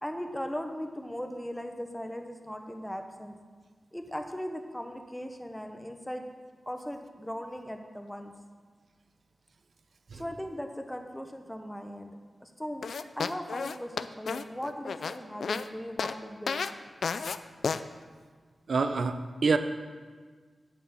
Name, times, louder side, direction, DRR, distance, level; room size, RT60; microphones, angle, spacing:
voice 1, 0.0-3.3 3.9-6.2 6.7-8.3 10.2-12.9 13.2-16.6, equal, 5° left, 5 dB, 1.0 m, -38 dB
sound 1, 12.8-15.7 16.0-16.2 16.5-16.7 17.0-17.4 17.6-17.8, left 5 dB, 80° left, 0.4 m, -32 dB
voice 2, 18.7-19.6, right 4 dB, 70° right, 9 dB, 0.7 m, -26 dB
8.5 x 7.5 x 7.0 m, 1.5 s
wide cardioid pair, 100°, 0 cm